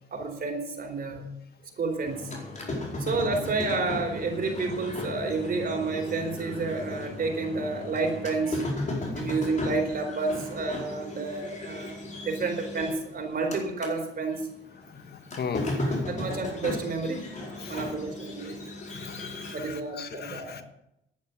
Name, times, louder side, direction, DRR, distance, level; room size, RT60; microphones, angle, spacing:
voice 1, 0.1-1.3 1.8-2.4 3.0-8.6 9.1-14.5 15.8-17.3 17.7-18.6 19.5-20.6, right 3 dB, 45° right, 3 dB, 4.2 m, -30 dB
sound 1, 2.0-14.0 14.3-19.5, left 2 dB, 40° left, 4.6 m, -36 dB
voice 2, 14.9-16.0 17.6-17.8 18.4-18.5 18.8-20.6, left 6 dB, 55° left, 9 dB, 1.3 m, -38 dB
11.0 x 9.5 x 9.4 m, 0.83 s
cardioid pair, 90°, 20 cm